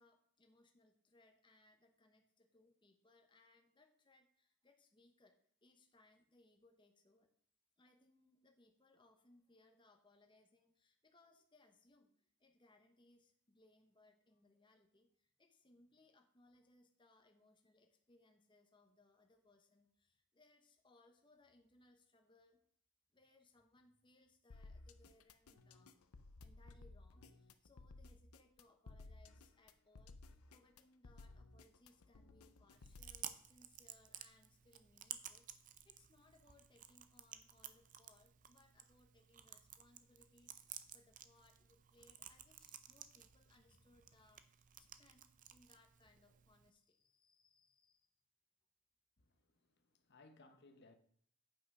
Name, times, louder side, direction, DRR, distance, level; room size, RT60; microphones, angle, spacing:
voice 1, 0.0-7.3 7.8-22.6 23.1-26.0 26.4-48.1, left 2 dB, 20° left, 1.0 m, -70 dB
sound 1, 24.5-33.2, left 3 dB, 90° left, 0.7 m, -58 dB
Chewing mastication, 32.7-46.7, right 10 dB, 35° right, 0.5 m, -55 dB
voice 2, 49.2-51.0, left 2 dB, 50° left, 1.0 m, -65 dB
8.7 x 5.6 x 5.4 m
head